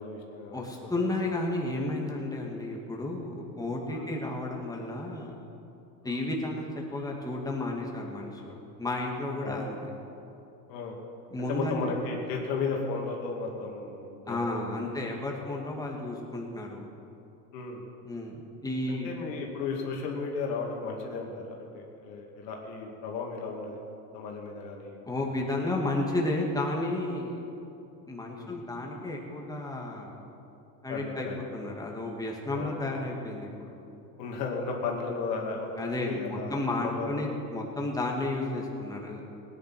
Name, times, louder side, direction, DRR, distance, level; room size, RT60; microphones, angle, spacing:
voice 1, 0.0-1.1 3.9-4.1 6.0-6.2 9.4-9.6 10.7-10.9 11.4-14.9 15.3-15.5 17.5-17.8 18.9-23.8 24.1-25.3 28.3-28.6 30.9-31.5 32.6-32.7 34.2-37.2, left 4 dB, 75° left, 0 dB, 2.5 m, -35 dB
voice 2, 0.5-5.3 6.0-9.9 11.3-11.8 14.3-16.9 18.1-18.4 18.6-19.1 25.0-27.4 28.1-30.1 30.8-31.3 31.5-33.7 35.8-39.2, left 2 dB, 5° left, -1 dB, 2.3 m, -32 dB
17.5 x 10.0 x 6.0 m, 2.8 s
hypercardioid pair, 90°, 50 cm